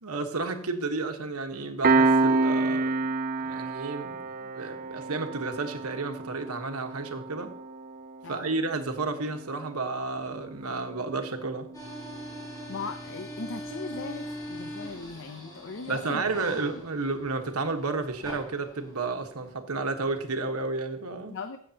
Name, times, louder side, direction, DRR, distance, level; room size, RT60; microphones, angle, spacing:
voice 1, 0.0-3.1 3.4-7.5 8.3-11.7 15.9-21.4, right 3 dB, 85° right, 6 dB, 1.3 m, -32 dB
Piano, 1.8-12.9, right 3 dB, 40° right, 0.5 m, -30 dB
voice 2, 8.2-8.6 12.7-16.8 21.3-21.6, left 4 dB, 60° left, 9 dB, 0.7 m, -39 dB
sound 1, 11.7-19.5, equal, 20° left, 4.0 m, -42 dB
16.0 x 7.0 x 2.8 m, 0.64 s
head